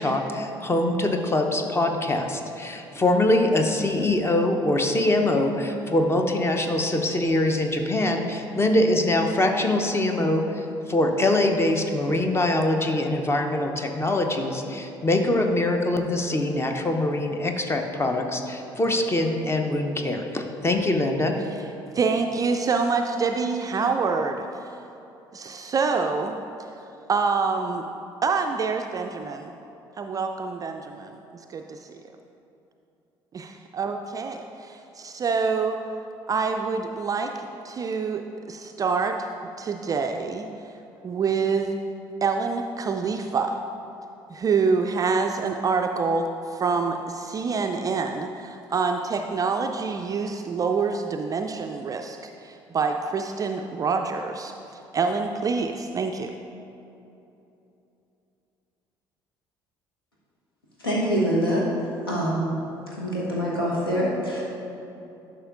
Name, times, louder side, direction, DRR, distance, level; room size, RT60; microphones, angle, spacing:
voice 1, 0.0-10.6 10.9-21.3, left 1 dB, 20° left, 4 dB, 0.7 m, -23 dB
voice 2, 21.9-24.8 25.3-26.4 27.1-27.9 28.2-29.5 30.0-32.0 33.3-35.8 36.3-37.3 37.6-39.2 39.6-40.7 41.0-41.8 42.2-43.6 44.3-54.5 54.9-56.3, right 4 dB, 30° right, 5 dB, 0.3 m, -26 dB
voice 3, 60.8-61.7 62.0-62.4 63.0-64.4, equal, 85° left, -5 dB, 1.2 m, -24 dB
11.0 x 5.5 x 2.5 m, 2.9 s
figure-of-eight pair, 50°, 12 cm